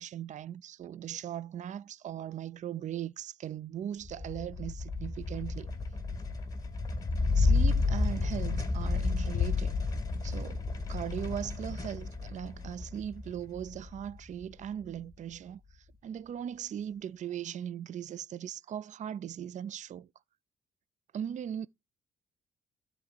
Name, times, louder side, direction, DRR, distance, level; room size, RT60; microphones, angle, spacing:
voice 1, 0.0-5.7 7.3-9.7 10.2-10.6 10.9-20.1 21.1-21.7, right 9 dB, 45° right, 0.4 m, -39 dB
sound 1, 4.0-14.6, left 3 dB, 20° left, 2.2 m, -31 dB
Bass drum, 9.3-10.8, left 9 dB, 45° left, 0.5 m, -34 dB
12.5 x 4.3 x 2.8 m
supercardioid pair, 60°, 18 cm